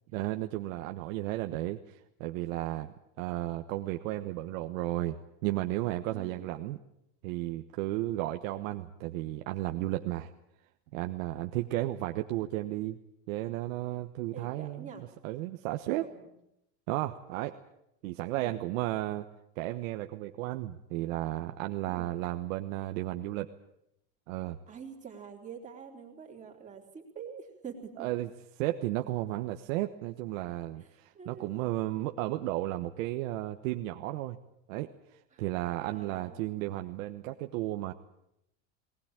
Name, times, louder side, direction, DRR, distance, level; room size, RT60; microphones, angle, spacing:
voice 1, 0.1-6.8 7.2-10.3 10.9-13.0 13.3-14.9 15.2-16.0 16.9-17.6 18.0-19.3 19.6-23.5 24.3-24.6 28.0-28.3 28.6-34.4 34.7-34.9 35.4-37.9, right 16 dB, 85° right, 6 dB, 1.3 m, -34 dB
voice 2, 6.1-6.6 14.3-15.0 15.9-16.3 18.3-18.7 21.9-22.2 24.7-28.1 30.8-31.6 35.3-35.5 35.8-36.4, right 6 dB, 20° right, 1 dB, 3.6 m, -46 dB
20.0 x 20.0 x 8.9 m, 0.80 s
cardioid pair, 170°, 39 cm